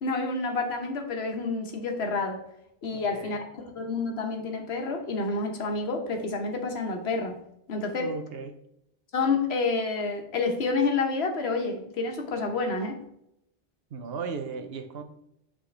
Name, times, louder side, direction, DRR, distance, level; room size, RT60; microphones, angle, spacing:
voice 1, 0.0-2.4 2.8-7.4 7.7-8.1 9.1-13.0, left 3 dB, 90° left, 4 dB, 1.2 m, -29 dB
voice 2, 2.9-3.4 8.0-8.6 13.9-15.0, right 5 dB, 75° right, 7 dB, 1.0 m, -36 dB
8.2 x 3.8 x 3.2 m, 0.77 s
omnidirectional pair, 1.0 m